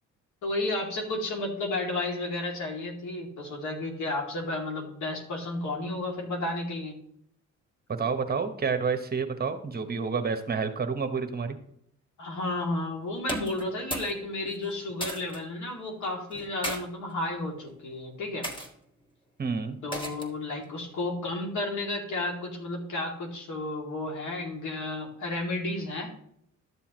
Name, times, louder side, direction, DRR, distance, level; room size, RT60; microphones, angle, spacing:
voice 1, 0.4-7.0 12.2-18.5 19.8-26.1, left 2 dB, 75° left, 0 dB, 2.6 m, -32 dB
voice 2, 8.0-11.6 19.4-19.8, right 5 dB, 30° right, 7 dB, 1.2 m, -29 dB
sound 1, 13.2-14.2 14.4-15.4 16.3-16.8 17.6-17.8 18.4-18.7 19.9-20.4, equal, 15° left, 1.8 m, -35 dB
12.5 x 7.1 x 3.1 m, 0.69 s
cardioid pair, 90°, 30 cm